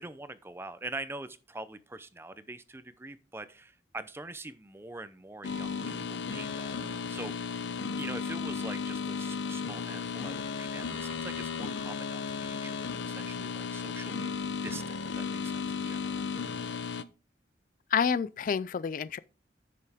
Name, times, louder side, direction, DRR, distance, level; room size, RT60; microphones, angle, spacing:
voice 1, 0.0-7.6 8.0-14.3 14.6-16.2, right 2 dB, 15° right, 0.5 m, -44 dB
sound 1, 5.4-17.0, left 5 dB, 90° left, 0.7 m, -35 dB
voice 2, 17.9-19.2, left 6 dB, 45° left, 0.3 m, -28 dB
10.5 x 6.7 x 3.6 m
head